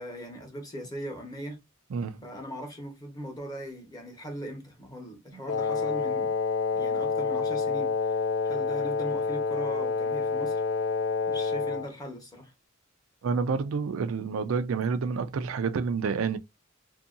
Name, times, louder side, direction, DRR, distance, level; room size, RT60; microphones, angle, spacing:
voice 1, 0.0-1.6 2.2-6.3 6.7-8.2 8.4-10.6 11.3-12.5, equal, 20° left, 1.0 m, -40 dB
voice 2, 1.9-2.2 5.3-5.4 13.2-16.4, right 5 dB, 85° right, 0.4 m, -29 dB
Wind instrument woodwind instrument, 5.5-11.9, left 4 dB, 60° left, 0.4 m, -28 dB
2.7 x 2.6 x 2.5 m
head